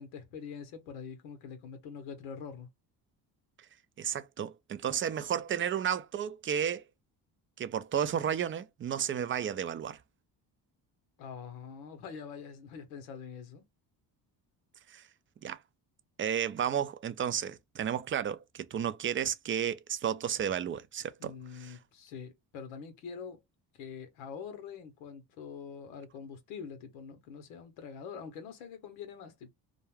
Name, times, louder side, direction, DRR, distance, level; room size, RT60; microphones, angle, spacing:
voice 1, 0.0-2.7 11.2-13.6 21.2-23.4 23.8-29.5, left 6 dB, 90° left, 0.8 m, -44 dB
voice 2, 4.0-6.8 7.6-10.0 14.9-15.0 15.4-15.6 16.2-21.8, right 9 dB, 30° right, 0.4 m, -32 dB
2.4 x 2.2 x 3.1 m
supercardioid pair, 60°, 49 cm